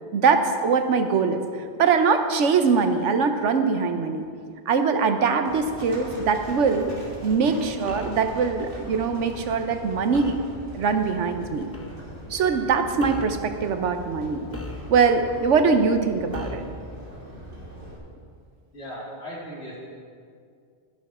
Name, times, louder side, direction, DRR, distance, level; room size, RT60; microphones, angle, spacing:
voice 1, 0.1-1.4 1.8-4.2 4.7-7.0 7.2-10.4 10.7-11.7 12.3-14.5 14.9-16.6, right 5 dB, 85° right, 7 dB, 1.1 m, -22 dB
Livestock farm animals working animals, 5.5-18.0, equal, 50° right, 2.6 m, -41 dB
sound 1, 7.9-8.3 10.1-10.5 11.7-12.0 13.0-13.4 14.5-15.2 16.3-16.8, left 2 dB, 15° left, 0.6 m, -37 dB
voice 2, 18.7-19.8, equal, 65° left, -6 dB, 3.2 m, -37 dB
12.0 x 10.5 x 4.2 m, 2.2 s
omnidirectional pair, 1.2 m